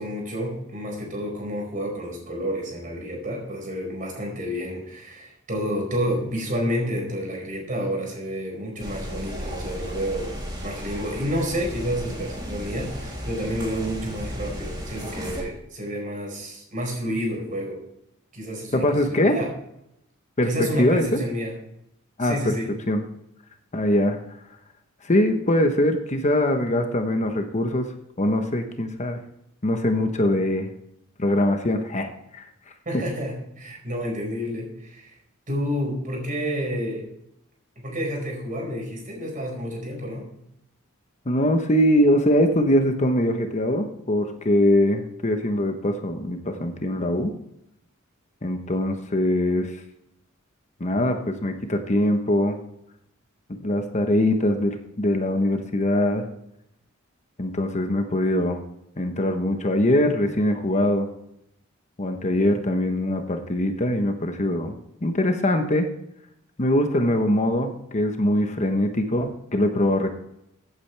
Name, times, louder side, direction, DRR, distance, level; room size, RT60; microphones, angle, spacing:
voice 1, 0.0-10.3 10.6-17.8 18.3-19.5 20.4-21.5 22.2-22.7 32.8-35.1 35.5-37.1 37.8-40.3, equal, 40° right, 0 dB, 4.7 m, -29 dB
sound 1, 8.8-15.4, equal, 20° right, 3.1 m, -34 dB
voice 2, 18.7-19.4 20.4-21.2 22.2-22.6 22.9-23.0 23.7-24.2 25.0-27.9 28.2-29.2 29.6-30.7 31.2-32.5 32.9-33.0 41.3-47.3 48.4-49.7 50.8-52.6 53.5-56.2 57.4-58.6 59.0-61.1 62.0-64.7 65.0-65.9 66.6-70.1, left 1 dB, 35° left, 6 dB, 1.1 m, -22 dB
15.5 x 8.7 x 3.4 m, 0.81 s
head